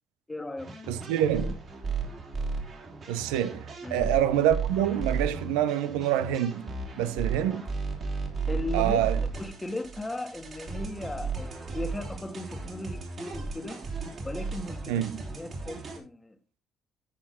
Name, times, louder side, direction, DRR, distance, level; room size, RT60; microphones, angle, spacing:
voice 1, 0.3-0.7 3.8-4.1 8.5-9.0 9.4-13.8 14.2-15.0 15.3-16.4, left 2 dB, 15° left, 1.5 m, -37 dB
sound 1, 0.6-16.0, right 4 dB, 50° right, 3.7 m, -35 dB
voice 2, 0.9-1.6 3.1-6.7 7.0-7.6 8.7-9.2 14.9-15.2, right 11 dB, 85° right, 0.8 m, -26 dB
13.5 x 5.0 x 3.7 m
hypercardioid pair, 55°, 0 cm